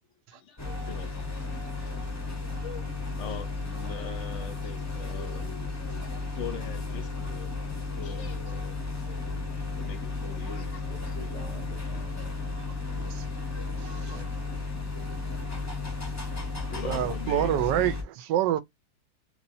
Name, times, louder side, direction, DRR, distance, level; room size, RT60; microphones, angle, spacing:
voice 1, 0.3-1.7 2.6-2.9 3.2-5.4 6.3-11.1 14.5-14.7 15.2-15.3 16.7-17.6, left 6 dB, 60° left, 0.8 m, -43 dB
sound 1, 0.6-18.0, left 3 dB, 20° left, 0.5 m, -34 dB
voice 2, 10.5-12.1 14.1-14.5, right 2 dB, 70° right, 0.3 m, -47 dB
voice 3, 13.8-14.2 16.8-18.6, right 11 dB, 90° right, 1.2 m, -27 dB
3.3 x 3.1 x 2.6 m
omnidirectional pair, 1.8 m